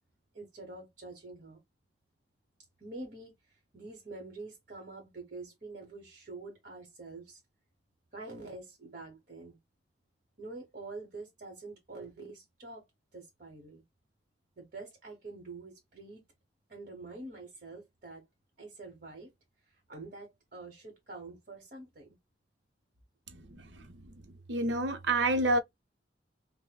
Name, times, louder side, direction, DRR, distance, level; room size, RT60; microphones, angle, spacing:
voice 1, 0.3-1.6 2.8-7.4 8.1-9.6 10.4-12.8 13.1-13.8 14.6-16.2 16.7-18.3 18.6-19.3 19.6-22.2, right 3 dB, 50° right, 1.2 m, -46 dB
voice 2, 23.3-24.1 24.5-25.6, right 2 dB, 85° right, 0.8 m, -29 dB
5.5 x 2.1 x 2.3 m
head